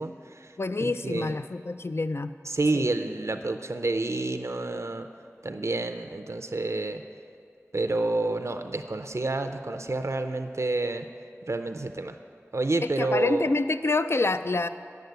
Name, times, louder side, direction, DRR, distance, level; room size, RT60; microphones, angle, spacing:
voice 1, 0.0-0.5 0.8-1.4 2.5-5.1 5.4-7.0 7.7-11.1 11.5-12.2 12.5-13.5, right 2 dB, 70° right, 7 dB, 0.5 m, -29 dB
voice 2, 0.6-2.3 2.7-2.9 12.8-14.7, left 3 dB, 55° left, 11 dB, 0.3 m, -27 dB
9.4 x 6.7 x 7.9 m, 2.4 s
wide cardioid pair, 45°, 5 cm